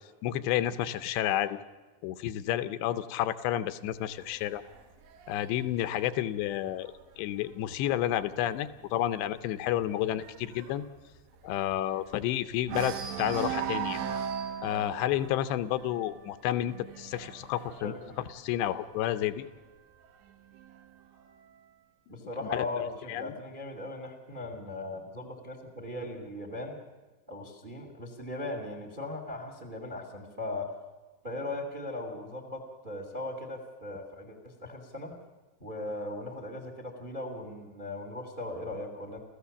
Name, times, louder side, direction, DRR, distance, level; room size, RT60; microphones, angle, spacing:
voice 1, 0.2-1.6 2.0-4.6 5.3-10.8 11.4-14.0 14.6-17.9 18.3-19.5 22.4-22.7 23.1-23.3, left 12 dB, 85° left, 12 dB, 3.0 m, -30 dB
sound 1, 3.9-7.5 7.9-8.2 8.5-8.6 9.0-12.3 12.6-19.2 20.0-21.0, right 8 dB, 85° right, 3.9 m, -39 dB
voice 2, 17.8-18.2 22.1-26.8 27.3-30.7 31.2-35.1 35.6-39.2, left 2 dB, 25° right, 5 dB, 1.0 m, -38 dB
28.5 x 15.0 x 7.1 m, 1.2 s
omnidirectional pair, 4.9 m